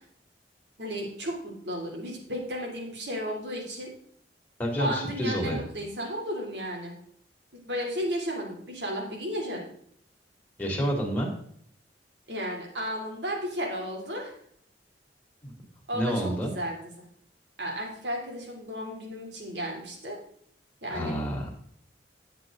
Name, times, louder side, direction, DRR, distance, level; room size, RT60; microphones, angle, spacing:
voice 1, 0.8-3.9 4.8-6.9 7.6-9.6 12.3-14.4 15.9-16.8 17.6-20.2 20.8-21.1, equal, 70° right, -1 dB, 3.2 m, -33 dB
voice 2, 4.6-5.6 10.6-11.3 15.4-15.5 15.9-16.5 20.9-21.5, equal, 10° left, -2 dB, 2.6 m, -29 dB
10.5 x 8.2 x 3.8 m, 0.63 s
head